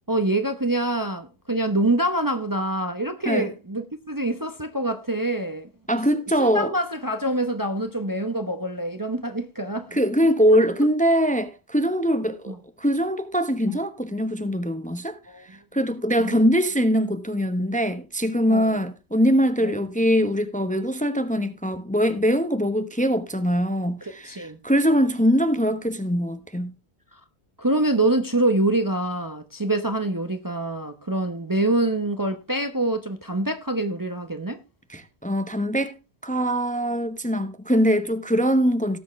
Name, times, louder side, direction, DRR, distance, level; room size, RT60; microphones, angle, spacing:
voice 1, 0.1-5.7 6.4-10.0 12.5-12.6 13.7-13.8 15.3-15.4 16.2-16.4 18.5-18.8 19.6-19.8 24.0-24.6 27.6-34.6, right 1 dB, 20° right, 0.8 m, -25 dB
voice 2, 5.9-6.7 9.9-15.2 15.7-26.7 34.9-36.0 36.2-39.0, equal, 10° left, 0.9 m, -22 dB
18.0 x 7.1 x 3.1 m
omnidirectional pair, 1.1 m